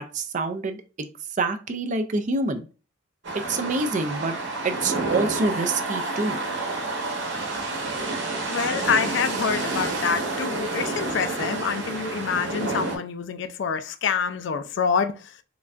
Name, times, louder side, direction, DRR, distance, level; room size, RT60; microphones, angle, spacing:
voice 1, 0.0-2.7 3.5-4.4 4.6-6.4, right 3 dB, 40° right, 0.4 m, -27 dB
sound 1, 3.2-13.0, right 2 dB, 60° right, 1.0 m, -29 dB
voice 2, 8.5-15.4, left 6 dB, 60° left, 0.4 m, -26 dB
3.7 x 3.2 x 2.4 m
head